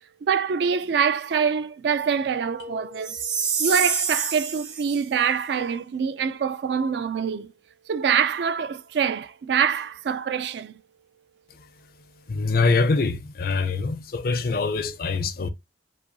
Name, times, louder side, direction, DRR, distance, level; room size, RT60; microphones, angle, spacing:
voice 1, 0.2-3.2 3.6-7.5 7.9-10.7, right 7 dB, 60° right, 0.3 m, -25 dB
sound 1, 2.6-3.8, left 4 dB, 80° left, 0.9 m, -44 dB
Chime, 3.0-5.0, right 6 dB, 35° right, 0.7 m, -27 dB
voice 2, 12.3-15.5, left 4 dB, 50° left, 0.5 m, -24 dB
4.8 x 2.3 x 2.7 m
head